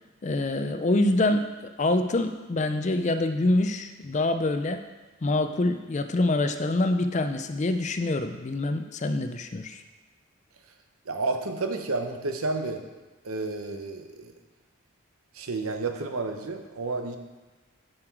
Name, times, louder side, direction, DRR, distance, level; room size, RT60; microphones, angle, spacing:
voice 1, 0.2-1.5 1.8-4.8 5.2-9.8, left 2 dB, 35° left, 8 dB, 0.4 m, -25 dB
voice 2, 11.1-12.8 13.2-14.3 15.4-17.2, right 3 dB, 85° right, 5 dB, 0.8 m, -31 dB
7.3 x 6.6 x 4.6 m, 1.2 s
head